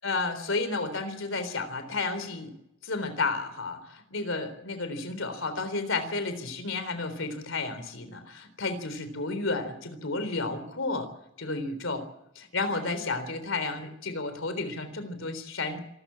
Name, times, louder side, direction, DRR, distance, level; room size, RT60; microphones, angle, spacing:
voice 1, 0.0-2.5 2.8-11.1 11.4-12.0 12.4-15.8, left 3 dB, 75° left, 10 dB, 3.7 m, -32 dB
26.5 x 13.5 x 8.8 m, 0.83 s
head